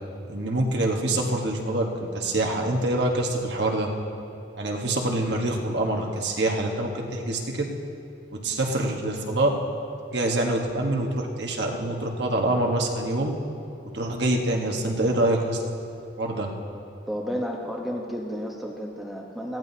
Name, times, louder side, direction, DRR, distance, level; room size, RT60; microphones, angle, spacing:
voice 1, 0.3-3.9 4.6-7.7 8.3-9.5 10.1-13.3 13.9-15.6 16.2-16.5, right 1 dB, 65° right, 1 dB, 1.4 m, -25 dB
voice 2, 17.1-19.6, equal, ahead, -1 dB, 1.0 m, -32 dB
18.5 x 14.5 x 2.8 m, 2.6 s
head